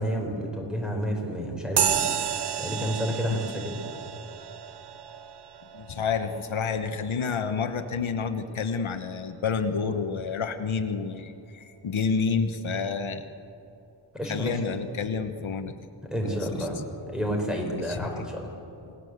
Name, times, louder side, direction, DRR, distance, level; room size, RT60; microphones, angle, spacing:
voice 1, 0.0-2.0 2.6-3.8 14.1-14.6 16.0-16.8 17.1-18.5, equal, ahead, 1 dB, 4.8 m, -30 dB
sound 1, 1.8-9.7, right 8 dB, 60° right, 0.9 m, -33 dB
voice 2, 5.7-13.2 14.2-15.7 16.2-16.7 17.9-18.3, left 5 dB, 80° left, 8 dB, 1.3 m, -29 dB
28.0 x 19.5 x 8.1 m, 2.7 s
wide cardioid pair, 150°, 47 cm